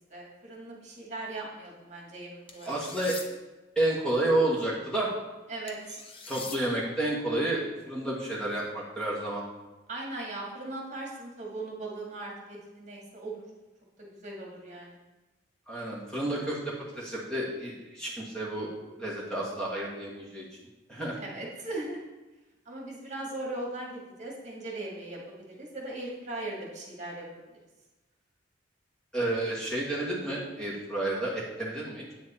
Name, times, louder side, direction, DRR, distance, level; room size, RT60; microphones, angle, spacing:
voice 1, 0.1-2.8 5.5-6.0 9.9-13.4 14.0-15.0 21.2-22.0 22.7-27.3, right 2 dB, 40° right, -2 dB, 2.0 m, -39 dB
sound 1, 2.5-3.3 5.7-6.6, left 4 dB, 30° left, 0.9 m, -42 dB
voice 2, 2.7-3.2 3.8-5.1 6.3-9.4 15.7-18.7 19.0-20.5 20.9-21.2 29.1-32.1, right 1 dB, 5° left, -5 dB, 1.8 m, -30 dB
8.7 x 7.8 x 4.3 m, 1.1 s
head